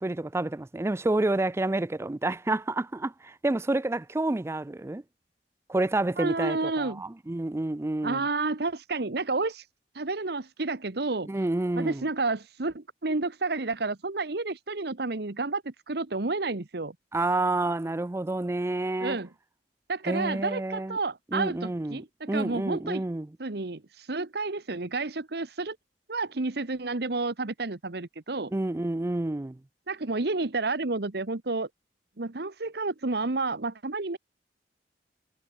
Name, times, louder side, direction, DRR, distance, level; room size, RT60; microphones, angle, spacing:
voice 1, 0.0-5.0 5.7-8.2 11.3-12.1 17.1-19.2 20.1-21.0 21.3-22.0 22.3-23.3 28.5-29.6, right 2 dB, 15° right, 0.4 m, -29 dB
voice 2, 6.2-7.0 8.0-9.6 9.9-11.3 11.8-16.9 19.0-19.3 19.9-23.0 23.4-25.8 26.1-28.5 29.9-31.7 32.2-34.2, right 3 dB, 65° right, 1.2 m, -30 dB
head